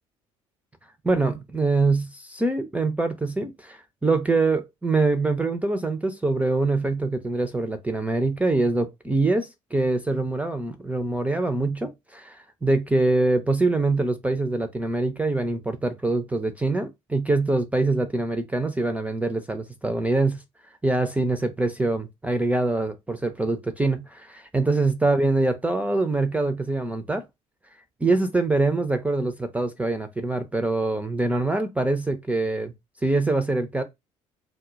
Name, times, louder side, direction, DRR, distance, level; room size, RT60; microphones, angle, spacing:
voice 1, 1.0-20.4 20.8-27.3 28.0-32.7 33.0-33.8, right 2 dB, 10° right, 0.3 m, -24 dB
2.1 x 2.0 x 3.7 m
figure-of-eight pair, 55°, 18 cm